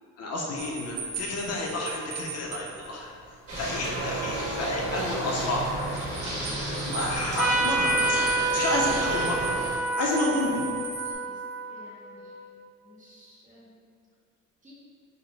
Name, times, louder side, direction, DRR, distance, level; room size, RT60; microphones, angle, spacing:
voice 1, 0.2-3.1 3.5-5.7 6.6-9.6 10.0-10.7, left 1 dB, 55° left, -2 dB, 0.6 m, -30 dB
sound 1, 0.6-11.1, right 4 dB, 65° right, 0.7 m, -40 dB
sound 2, 3.5-9.8, right 1 dB, 50° right, 1.4 m, -33 dB
Trumpet, 7.4-12.5, right 2 dB, 5° right, 0.4 m, -28 dB
voice 2, 11.0-11.4 11.7-12.5 12.8-13.8 14.6-14.7, equal, 25° right, -7 dB, 1.0 m, -51 dB
4.8 x 2.2 x 3.2 m, 2.2 s
cardioid pair, 125°, 30 cm